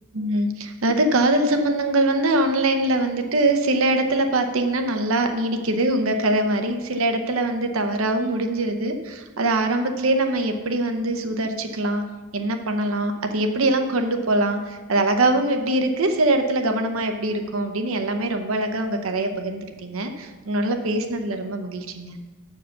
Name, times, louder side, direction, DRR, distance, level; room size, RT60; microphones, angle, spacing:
voice 1, 0.1-12.1 12.3-22.2, right 2 dB, 70° right, 6 dB, 0.7 m, -23 dB
6.4 x 4.7 x 6.6 m, 1.3 s
head